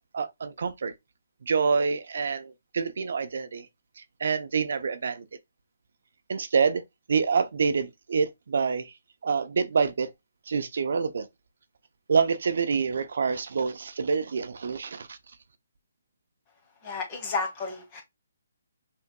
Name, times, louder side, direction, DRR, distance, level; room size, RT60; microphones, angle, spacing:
voice 1, 0.1-0.9 1.4-3.7 4.0-5.2 6.3-6.8 7.1-8.9 9.2-10.1 10.5-11.3 12.1-15.2, right 5 dB, 65° right, 0.7 m, -27 dB
voice 2, 16.8-18.0, left 4 dB, 30° left, 1.7 m, -32 dB
5.8 x 3.5 x 2.2 m
hypercardioid pair, 150°, 0 cm